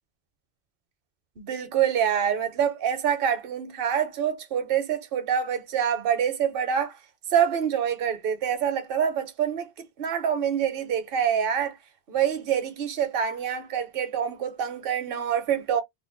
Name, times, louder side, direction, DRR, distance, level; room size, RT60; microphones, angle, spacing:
voice 1, 1.4-7.0 7.3-11.8 12.1-15.8, right 8 dB, 65° right, 0.9 m, -26 dB
2.9 x 2.2 x 3.7 m
omnidirectional pair, 1.0 m